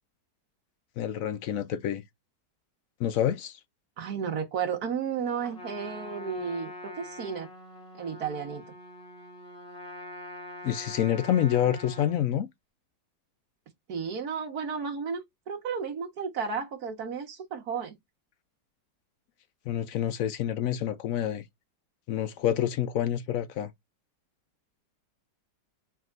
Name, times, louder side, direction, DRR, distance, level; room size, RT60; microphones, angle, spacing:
voice 1, 1.0-2.0 3.0-3.6 10.6-12.5 19.7-21.4 22.1-23.7, left 10 dB, 70° left, 0.8 m, -27 dB
voice 2, 4.0-7.5 8.0-8.6 13.9-18.0, right 6 dB, 60° right, 1.7 m, -33 dB
Trumpet, 5.4-12.2, left 1 dB, 5° left, 2.7 m, -44 dB
4.7 x 3.5 x 2.4 m
omnidirectional pair, 1.9 m